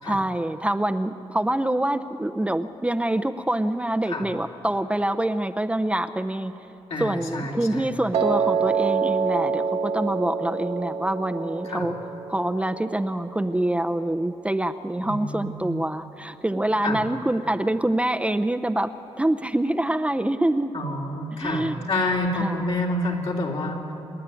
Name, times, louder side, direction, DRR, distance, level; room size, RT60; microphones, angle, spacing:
voice 1, 0.0-6.5 7.0-11.9 12.3-18.9 19.2-20.7 21.3-21.7 22.4-22.7, right 1 dB, 10° right, 7 dB, 0.7 m, -25 dB
voice 2, 6.9-7.9 11.6-11.9 15.0-15.8 16.8-17.0 20.7-23.9, left 1 dB, 65° left, -2 dB, 3.5 m, -28 dB
Piano, 8.1-14.3, right 5 dB, 90° right, 1.3 m, -27 dB
27.5 x 10.5 x 9.1 m, 3.0 s
cardioid pair, 70°, 11 cm